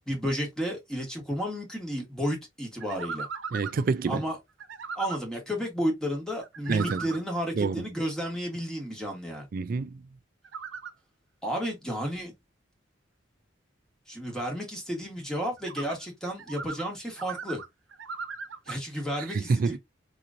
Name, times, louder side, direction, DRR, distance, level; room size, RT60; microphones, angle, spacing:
voice 1, 0.1-3.3 4.1-4.3 4.9-9.5 11.4-12.3 14.1-17.6 18.7-19.8, equal, 5° left, 1.3 m, -32 dB
sound 1, 2.8-3.8 4.6-5.2 6.4-7.2 10.4-10.9 15.6-16.0 16.4-16.9 17.2-18.7, right 5 dB, 80° right, 0.6 m, -38 dB
voice 2, 3.5-4.3 6.7-7.0 7.6-7.9 9.5-10.0 19.2-19.8, right 4 dB, 50° right, 0.3 m, -27 dB
3.7 x 3.0 x 2.5 m
head